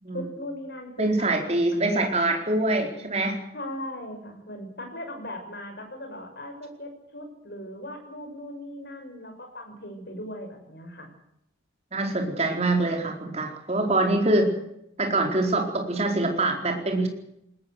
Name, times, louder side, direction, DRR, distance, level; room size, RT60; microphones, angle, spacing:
voice 1, 0.1-1.3 1.7-2.2 3.5-11.1, equal, 55° left, 4 dB, 6.3 m, -38 dB
voice 2, 1.0-3.4 11.9-14.5 15.0-17.1, right 2 dB, 30° right, 3 dB, 4.4 m, -24 dB
20.0 x 20.0 x 8.0 m, 0.79 s
head